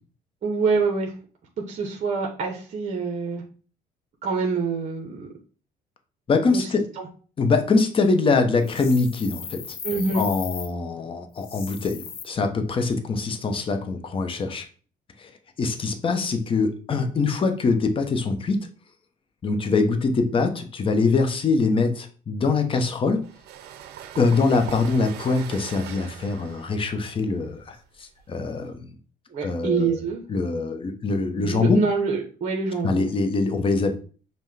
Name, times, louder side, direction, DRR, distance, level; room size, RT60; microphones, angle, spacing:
voice 1, 0.4-1.1 1.7-3.4 4.2-5.3 6.5-6.7 7.0-7.1 9.8-10.2 29.3-30.2 31.3-33.1, right 4 dB, 45° right, 1 dB, 0.8 m, -26 dB
voice 2, 6.3-6.8 7.4-9.6 10.1-14.6 15.2-15.3 15.6-18.6 19.4-23.3 24.2-27.8 28.3-28.8 29.4-29.9 30.3-31.8 32.8-34.0, left 4 dB, 30° left, 6 dB, 0.7 m, -23 dB
sound 1, 8.6-10.7 11.4-12.2, left 7 dB, 65° left, 0.8 m, -37 dB
sound 2, 23.2-28.7, right 10 dB, 75° right, 0.5 m, -41 dB
5.5 x 2.2 x 3.2 m, 0.39 s
cardioid pair, 110°, 17 cm